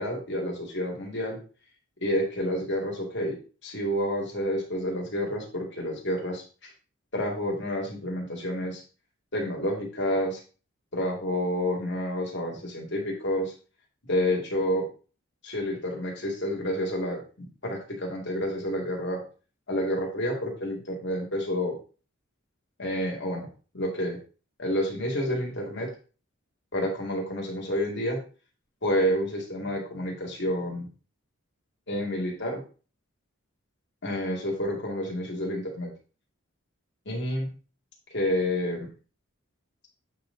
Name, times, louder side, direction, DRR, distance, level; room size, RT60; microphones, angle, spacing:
voice 1, 0.0-1.4 2.0-3.4 3.6-6.7 7.1-8.8 9.3-10.4 10.9-13.5 14.1-14.9 15.4-19.2 19.7-21.8 22.8-23.5 23.7-24.2 24.6-25.9 26.7-28.2 28.8-30.9 31.9-32.6 34.0-35.9 37.1-37.5 38.1-38.9, equal, 55° left, -1 dB, 2.4 m, -29 dB
8.3 x 4.2 x 3.8 m, 0.36 s
head